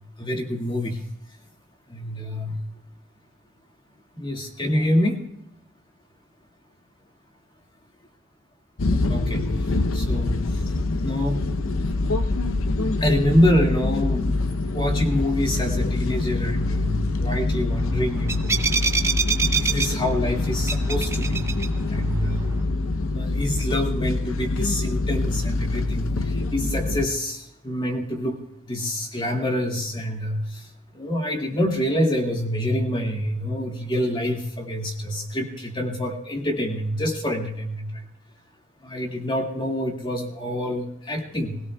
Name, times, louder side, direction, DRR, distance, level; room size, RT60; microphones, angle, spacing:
voice 1, 0.2-1.0 1.9-2.6 4.2-5.2 9.1-10.6 11.0-11.4 13.0-18.5 19.0-19.2 19.5-21.5 21.8-22.5 23.1-28.4 28.7-30.7 30.9-38.0 38.8-41.6, left 1 dB, 25° left, 0 dB, 2.1 m, -26 dB
sound 1, 8.8-27.1, left 2 dB, 85° left, 0.7 m, -25 dB
sound 2, 17.7-22.6, right 4 dB, 15° right, 0.6 m, -28 dB
25.5 x 17.0 x 2.3 m, 0.76 s
head